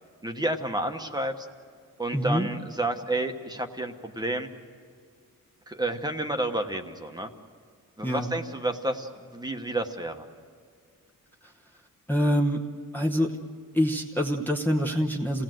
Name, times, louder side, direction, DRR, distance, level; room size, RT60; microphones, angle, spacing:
voice 1, 0.2-1.5 2.0-4.5 5.7-7.3 8.0-10.3, right 1 dB, 10° right, 5 dB, 1.2 m, -30 dB
voice 2, 2.1-2.5 8.0-8.3 11.4-11.5 12.1-12.6 12.9-13.3 13.7-15.4, equal, 5° left, 0 dB, 1.0 m, -25 dB
28.0 x 18.0 x 7.8 m, 2.1 s
wide cardioid pair, 170°, 34 cm